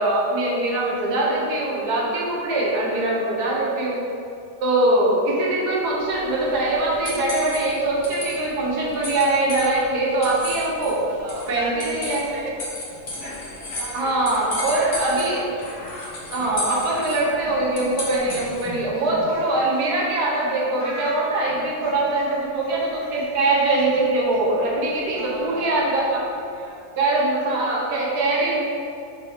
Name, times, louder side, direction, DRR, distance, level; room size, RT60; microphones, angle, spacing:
voice 1, 0.0-4.0 4.6-11.0 11.5-12.2 13.9-15.5 16.3-26.2 27.0-28.6, right 2 dB, 90° right, -4 dB, 1.6 m, -22 dB
sound 1, 6.0-18.8, left 1 dB, 45° left, 1.1 m, -35 dB
voice 2, 11.1-12.6 13.2-13.3 13.6-14.9 22.0-22.2 25.1-26.9, right 3 dB, 60° right, 0 dB, 0.9 m, -38 dB
Laughter, 12.9-20.1 20.3-20.5 20.8-26.5, left 1 dB, 80° left, 1.7 m, -41 dB
6.6 x 3.0 x 4.9 m, 2.6 s
omnidirectional pair, 1.6 m